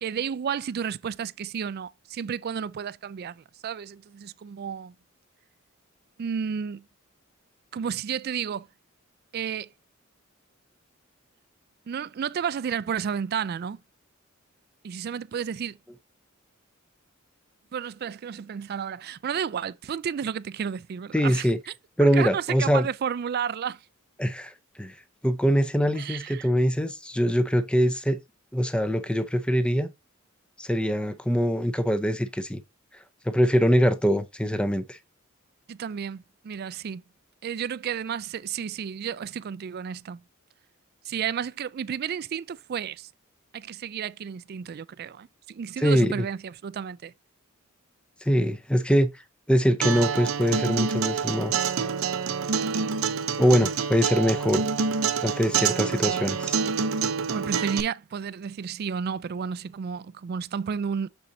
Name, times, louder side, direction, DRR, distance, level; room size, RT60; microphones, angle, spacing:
voice 1, 0.0-4.9 6.2-6.8 7.7-8.7 9.3-9.7 11.9-13.8 14.8-15.8 17.7-21.7 22.0-23.8 25.9-26.5 35.7-37.0 37.4-40.2 41.0-43.1 43.5-47.1 52.7-53.0 56.0-56.2 57.3-61.1, right 7 dB, 50° right, 0.3 m, -32 dB
voice 2, 21.1-21.6 22.0-22.9 24.2-24.9 25.2-28.2 28.5-29.9 30.6-32.6 33.3-35.0 45.8-46.3 48.2-49.1 49.5-51.7 53.4-54.6 55.2-56.6, equal, 5° left, 0.6 m, -23 dB
Acoustic guitar, 49.8-57.8, right 6 dB, 85° right, 0.7 m, -27 dB
6.9 x 6.4 x 2.6 m
head